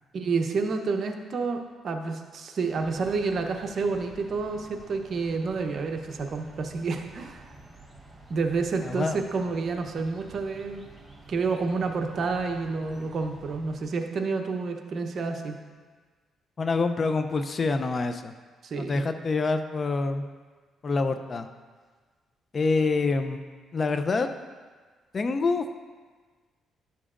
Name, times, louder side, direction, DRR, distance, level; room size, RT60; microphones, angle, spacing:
voice 1, 0.1-7.4 8.3-10.8 11.3-15.6 18.6-19.0, right 4 dB, 55° right, 4 dB, 0.8 m, -29 dB
sound 1, 2.6-14.0, right 2 dB, 15° right, 1.0 m, -50 dB
voice 2, 8.8-9.2 16.6-18.3 18.8-20.2 20.8-21.5 22.5-23.4 23.7-24.3 25.1-25.8, left 3 dB, 40° left, 8 dB, 0.5 m, -26 dB
12.0 x 7.0 x 2.5 m, 1.5 s
cardioid pair, 90°, 0 cm